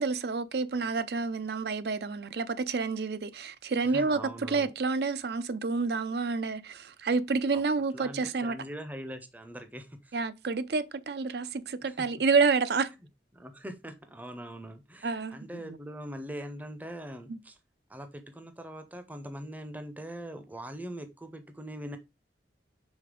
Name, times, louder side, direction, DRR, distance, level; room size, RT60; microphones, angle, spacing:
voice 1, 0.0-8.6 10.1-12.9 15.0-15.4 17.3-17.4, right 4 dB, 65° right, 0.5 m, -29 dB
voice 2, 3.8-4.7 7.9-10.1 11.7-12.2 13.3-17.6 17.9-22.0, equal, 10° right, 0.6 m, -42 dB
5.1 x 3.8 x 5.1 m
head